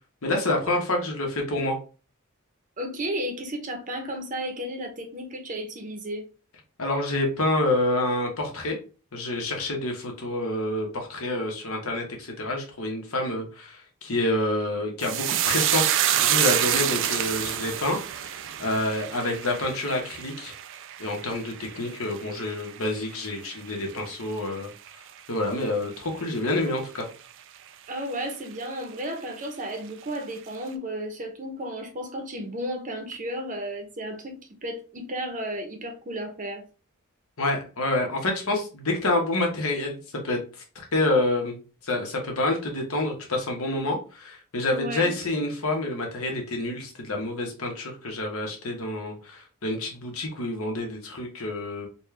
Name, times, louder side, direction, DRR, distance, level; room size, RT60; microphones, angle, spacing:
voice 1, 0.2-1.8 6.8-8.8 9.1-20.5 21.0-24.7 25.3-27.1 37.4-40.4 40.7-41.6 41.8-51.9, left 2 dB, 70° left, 1.1 m, -28 dB
voice 2, 2.8-6.2 16.7-16.9 27.9-36.6 44.7-45.1, equal, 35° right, 0.8 m, -33 dB
sound 1, 15.0-23.6 23.9-24.6 24.9-25.1, right 11 dB, 60° right, 0.4 m, -27 dB
4.2 x 2.3 x 3.2 m
head